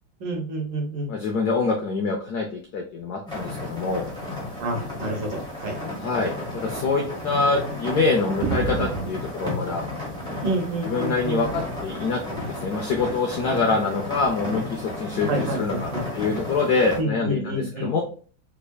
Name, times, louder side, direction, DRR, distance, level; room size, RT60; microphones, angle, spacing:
voice 1, 0.2-1.1 4.6-5.8 10.4-11.4 15.3-16.1 17.0-17.9, right 1 dB, 65° right, 2 dB, 1.4 m, -28 dB
voice 2, 1.1-4.0 6.0-9.9 10.8-18.0, left 4 dB, 85° left, 2 dB, 0.8 m, -25 dB
sound 1, 3.3-17.0, left 2 dB, 5° left, 0.9 m, -33 dB
sound 2, 8.4-10.6 11.0-11.9 12.8-13.2 14.2-14.4, right 4 dB, 85° right, 1.4 m, -32 dB
3.5 x 3.3 x 2.2 m, 0.41 s
omnidirectional pair, 2.3 m